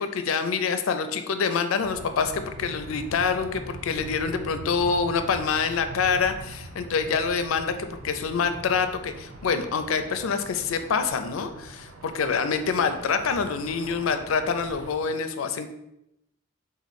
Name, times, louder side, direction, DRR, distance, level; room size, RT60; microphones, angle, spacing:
voice 1, 0.0-15.7, left 5 dB, 90° left, 9 dB, 0.4 m, -26 dB
sound 1, 1.8-14.9, right 2 dB, 90° right, 0.6 m, -42 dB
4.0 x 3.0 x 4.1 m, 0.84 s
head